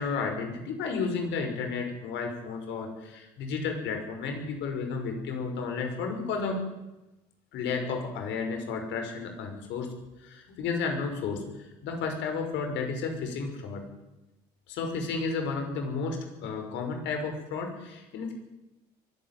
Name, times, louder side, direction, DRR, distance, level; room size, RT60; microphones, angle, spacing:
voice 1, 0.0-6.6 7.5-9.9 10.2-11.4 11.8-13.8 14.7-18.3, left 4 dB, 70° left, 5 dB, 5.9 m, -32 dB
22.5 x 13.5 x 9.3 m, 0.98 s
supercardioid pair, 85°, 20 cm